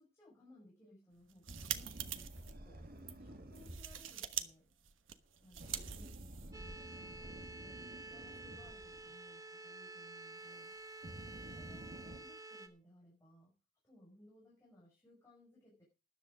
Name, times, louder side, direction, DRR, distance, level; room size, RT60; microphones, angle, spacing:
voice 1, 0.0-2.9 3.2-4.7 5.4-6.2 6.9-10.8 11.3-13.5 13.8-15.8, left 1 dB, 15° left, -5 dB, 5.7 m, -63 dB
sound 1, 1.2-2.5 3.0-3.1 3.5-4.5 4.7-6.7, right 10 dB, 80° right, 1.2 m, -44 dB
sound 2, 1.5-4.2 5.5-9.1 10.5-10.6 11.0-12.2, right 1 dB, 50° right, 1.7 m, -51 dB
sound 3, 6.5-12.7, right 2 dB, 15° right, 1.5 m, -50 dB
13.5 x 10.0 x 5.0 m, 0.33 s
head